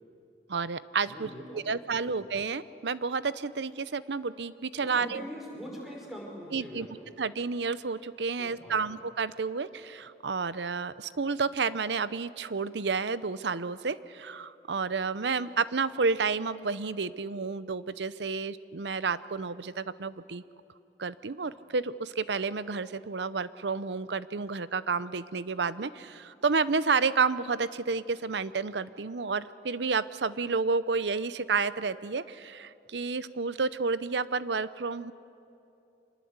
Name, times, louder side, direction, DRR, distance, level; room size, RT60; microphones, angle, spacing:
voice 1, 0.5-5.2 6.5-6.9 7.2-20.4 21.0-35.1, right 4 dB, 85° right, 16 dB, 0.7 m, -30 dB
voice 2, 1.1-1.8 2.0-2.2 4.8-7.1 8.4-8.8, equal, ahead, -2 dB, 5.4 m, -43 dB
25.5 x 20.5 x 8.1 m, 2.7 s
head